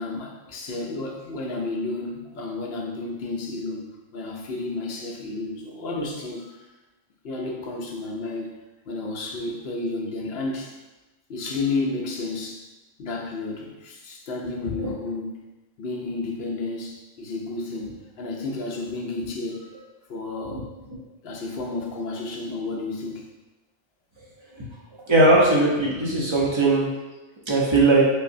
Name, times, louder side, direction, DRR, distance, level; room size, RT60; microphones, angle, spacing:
voice 1, 0.0-6.6 7.2-8.6 8.9-10.7 11.3-12.6 13.0-15.4 15.8-19.8 20.1-20.7 21.2-23.3 25.9-26.0, left 3 dB, 60° left, -1 dB, 0.8 m, -31 dB
voice 2, 25.1-26.9 27.5-28.0, right 2 dB, 35° right, -5 dB, 0.5 m, -18 dB
5.1 x 2.0 x 2.6 m, 1.1 s
omnidirectional pair, 1.3 m